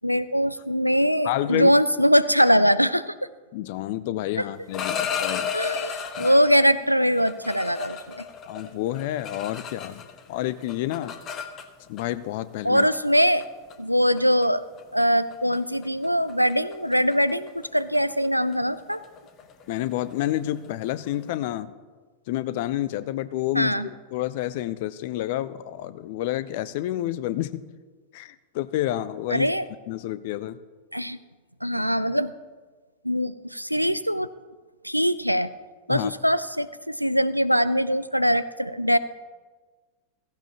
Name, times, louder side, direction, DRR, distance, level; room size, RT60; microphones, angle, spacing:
voice 1, 0.0-3.1 4.4-4.5 5.5-8.3 12.6-13.5 13.8-14.6 14.9-19.0 23.5-23.9 29.3-29.6 30.9-31.2 31.6-32.3 33.0-34.3 34.8-35.5 35.9-39.0, equal, 90° right, 14 dB, 0.4 m, -22 dB
voice 2, 1.2-1.7 3.5-5.5 6.2-6.3 8.5-11.2 11.9-12.9 19.7-21.7 22.3-27.6 28.1-29.5 29.9-30.6 35.9-36.1, left 14 dB, 50° left, 15 dB, 0.6 m, -29 dB
sound 1, 4.5-6.7 7.2-10.2 10.5-12.0 12.9-13.1 13.4-13.7 14.2-14.4 14.8-15.0 15.3-15.6 15.8-21.2, left 7 dB, 30° left, 1.0 m, -34 dB
16.0 x 15.0 x 2.9 m, 1.4 s
figure-of-eight pair, 90°, 0 cm